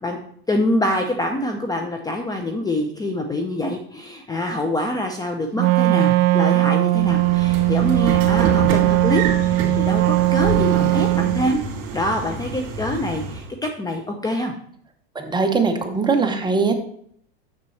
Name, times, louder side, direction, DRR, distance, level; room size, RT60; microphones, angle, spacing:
voice 1, 0.5-11.6 11.9-14.5, left 1 dB, 10° left, 4 dB, 0.6 m, -25 dB
Wind instrument woodwind instrument, 5.6-11.5, right 19 dB, 70° right, 0.6 m, -18 dB
Train / Sliding door, 7.0-13.5, right 4 dB, 50° right, 2.4 m, -28 dB
voice 2, 15.1-16.7, right 4 dB, 15° right, 4 dB, 0.9 m, -21 dB
6.7 x 6.7 x 3.2 m, 0.64 s
supercardioid pair, 120°, 32 cm